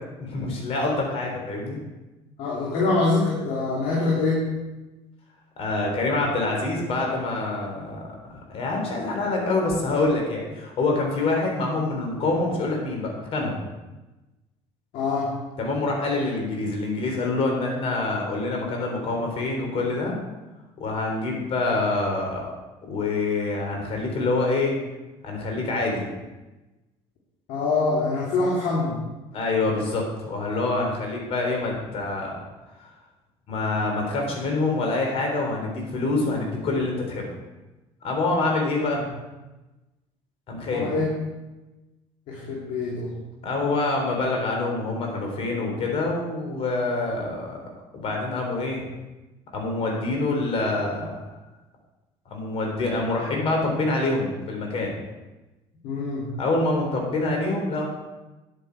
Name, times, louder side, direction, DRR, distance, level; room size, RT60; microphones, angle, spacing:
voice 1, 0.2-1.8 5.6-13.6 15.6-20.2 20.8-22.5 22.9-24.7 25.2-26.1 29.3-32.3 33.5-37.3 38.0-39.0 40.5-40.9 43.4-47.6 47.9-48.9 49.5-51.3 52.3-54.9 56.4-57.8, left 2 dB, 55° left, 1 dB, 3.7 m, -26 dB
voice 2, 2.4-4.5 14.9-15.3 27.5-29.0 39.0-39.1 40.7-41.1 42.3-43.1 53.3-53.7 55.8-56.3, left 3 dB, 75° left, -5 dB, 3.0 m, -25 dB
10.0 x 9.3 x 4.8 m, 1.1 s
cardioid pair, 110°, 12 cm